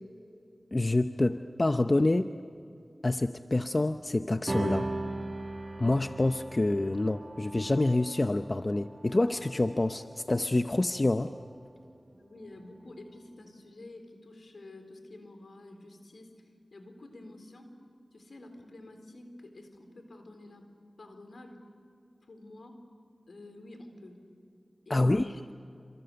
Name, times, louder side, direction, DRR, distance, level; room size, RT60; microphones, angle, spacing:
voice 1, 0.7-2.3 3.0-4.9 5.8-11.3 24.9-25.3, left 2 dB, 45° left, 9 dB, 0.7 m, -27 dB
sound 1, 4.5-11.2, right 2 dB, 40° right, 1.5 m, -38 dB
voice 2, 12.1-17.7 18.1-20.7 21.0-21.7 22.2-22.9 23.3-24.3 24.9-25.4, left 2 dB, 85° left, 5 dB, 3.9 m, -49 dB
29.0 x 27.0 x 6.9 m, 2.5 s
cardioid pair, 40°, 0 cm